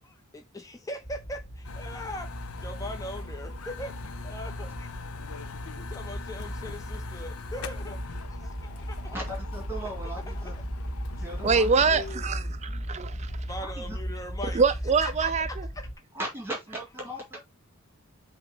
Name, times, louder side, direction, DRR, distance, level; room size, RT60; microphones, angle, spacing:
voice 1, 0.0-2.3 2.6-4.0 4.2-5.5 5.8-9.2 9.8-10.6 11.9-12.3 13.5-14.6 15.0-15.9, left 1 dB, 15° left, 0.8 m, -41 dB
sound 1, 1.0-15.9, equal, 35° left, 1.8 m, -37 dB
sound 2, 1.6-12.1, left 5 dB, 80° left, 0.7 m, -43 dB
voice 2, 9.0-10.6 11.2-12.0 13.6-14.0 16.1-17.4, right 1 dB, 10° right, 2.4 m, -38 dB
voice 3, 11.4-13.3 14.5-15.7, right 5 dB, 30° right, 0.4 m, -24 dB
7.6 x 3.2 x 4.0 m
head